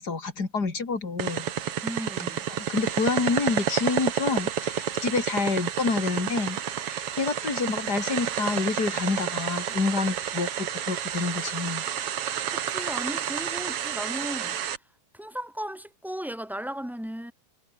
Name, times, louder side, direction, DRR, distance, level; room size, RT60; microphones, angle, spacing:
voice 1, 0.0-1.5 2.5-6.6 6.8-11.9, left 4 dB, 30° left, 3.9 m, -28 dB
sound 1, 1.2-14.8, right 9 dB, 55° right, 2.2 m, -30 dB
voice 2, 1.8-2.4 12.5-14.6 15.1-17.3, equal, ahead, 5.0 m, -35 dB
omnidirectional pair, 3.5 m